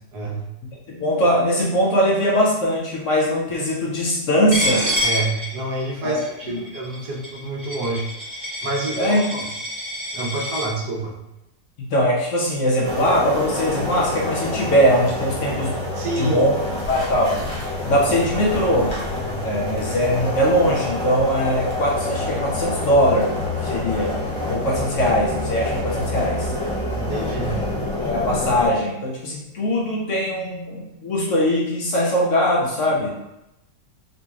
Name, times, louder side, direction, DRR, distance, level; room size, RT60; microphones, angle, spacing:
voice 1, 0.1-0.4 5.0-8.1 8.6-9.5 10.1-11.2 15.9-16.4 26.9-27.7, right 2 dB, 85° right, -2 dB, 1.4 m, -28 dB
voice 2, 0.9-4.9 6.0-6.6 9.0-9.2 11.8-15.7 16.2-16.6 16.9-17.4 17.9-18.9 19.4-23.3 23.6-24.1 24.5-26.5 28.0-33.1, equal, 60° left, -3 dB, 1.0 m, -21 dB
Coin (dropping), 4.5-10.7, equal, 30° right, 1.7 m, -27 dB
sound 1, 12.8-28.7, left 2 dB, 35° left, 0.5 m, -27 dB
4.0 x 2.9 x 2.4 m, 0.87 s
omnidirectional pair, 1.7 m